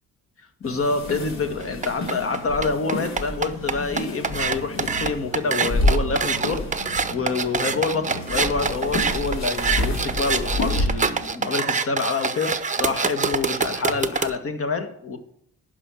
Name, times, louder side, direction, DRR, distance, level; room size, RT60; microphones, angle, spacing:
sound 1, 0.6-10.9, left 1 dB, 65° left, 3.2 m, -29 dB
voice 1, 0.6-6.6 7.1-15.2, left 4 dB, 45° left, 7 dB, 1.7 m, -27 dB
sound 2, 1.6-14.3, right 5 dB, 25° right, 0.8 m, -26 dB
11.5 x 5.1 x 7.6 m, 0.69 s
cardioid pair, 90°, 30 cm